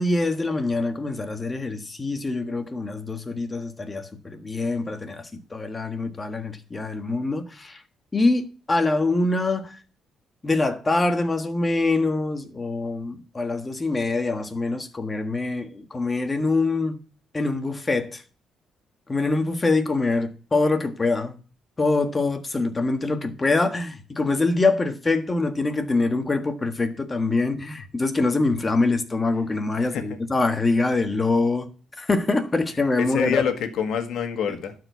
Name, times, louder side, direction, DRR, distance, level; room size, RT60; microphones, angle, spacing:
voice 1, 0.0-7.8 8.1-9.8 10.4-17.0 17.3-18.2 19.1-21.4 21.8-31.7 32.0-33.4, left 3 dB, 25° left, 1.5 m, -24 dB
voice 2, 29.8-30.2 33.0-34.7, left 8 dB, 75° left, 1.7 m, -27 dB
12.0 x 4.8 x 8.0 m
cardioid pair, 90°, 0 cm